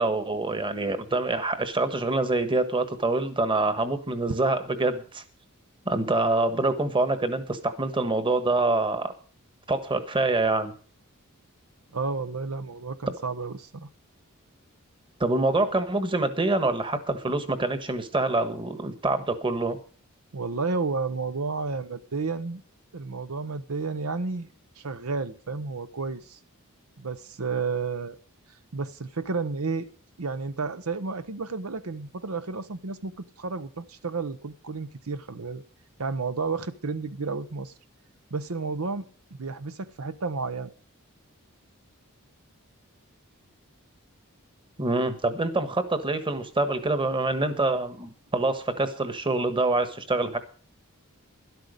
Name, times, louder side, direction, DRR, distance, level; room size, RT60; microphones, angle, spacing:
voice 1, 0.0-5.2 5.8-9.1 9.7-10.7 15.2-19.8 44.8-50.4, right 2 dB, 25° right, 10 dB, 1.4 m, -26 dB
voice 2, 11.9-13.9 20.3-22.6 22.9-24.5 24.8-26.4 27.0-28.2 28.7-29.9 30.2-35.6 36.0-37.7 38.3-40.7, right 4 dB, 80° right, 11 dB, 0.9 m, -31 dB
12.5 x 11.5 x 5.1 m, 0.41 s
head